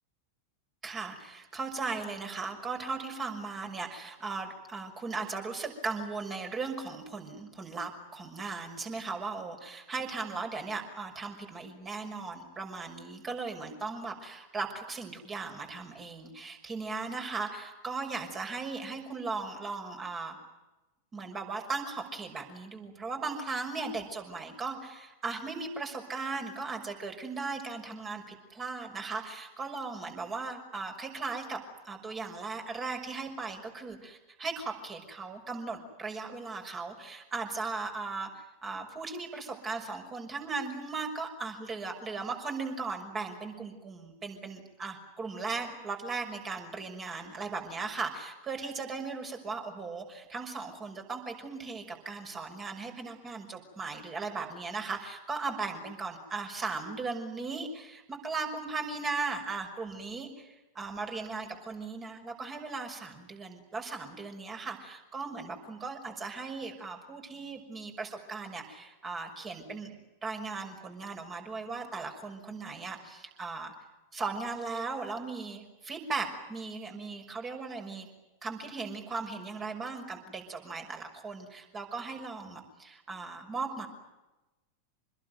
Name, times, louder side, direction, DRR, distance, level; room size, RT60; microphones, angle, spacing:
voice 1, 0.8-20.4 21.1-73.7 74.1-78.1 78.4-83.9, right 4 dB, 20° right, 4 dB, 6.0 m, -37 dB
27.5 x 21.0 x 9.4 m, 1.0 s
figure-of-eight pair, 90°, 0 cm